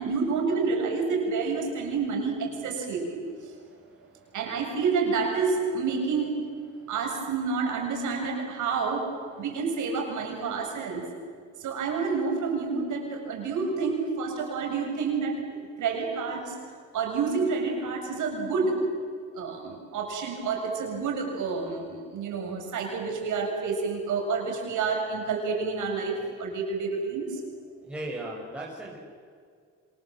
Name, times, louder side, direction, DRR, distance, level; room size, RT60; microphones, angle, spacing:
voice 1, 0.0-3.2 4.3-6.5 6.9-11.1 11.6-15.5 15.8-16.6 16.9-19.0 19.3-27.4, right 4 dB, 80° right, 2 dB, 7.4 m, -29 dB
voice 2, 3.5-4.3 6.7-6.9 27.8-29.0, right 1 dB, 5° right, -5 dB, 7.0 m, -39 dB
28.5 x 27.0 x 7.8 m, 2.1 s
cardioid pair, 90°, 30 cm